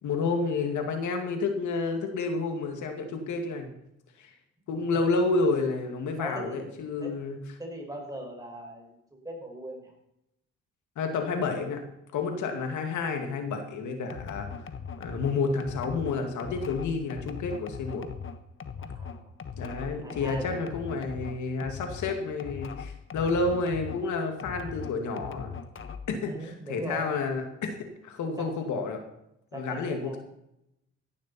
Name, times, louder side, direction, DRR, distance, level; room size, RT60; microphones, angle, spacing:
voice 1, 0.0-3.7 4.2-4.3 4.7-7.4 11.0-11.8 12.1-14.5 15.0-18.1 19.6-25.5 26.1-29.0 29.5-30.2, left 4 dB, 75° left, 4 dB, 2.2 m, -30 dB
voice 2, 6.2-6.7 7.0-7.1 7.6-9.9 18.8-19.3 20.0-20.6 26.2-27.2 28.4-28.5 29.5-30.2, right 1 dB, 10° right, 0 dB, 5.8 m, -39 dB
sound 1, 14.1-24.1 24.4-26.2, left 6 dB, 40° left, 1.3 m, -40 dB
16.5 x 11.5 x 4.4 m, 0.83 s
cardioid pair, 90°, 30 cm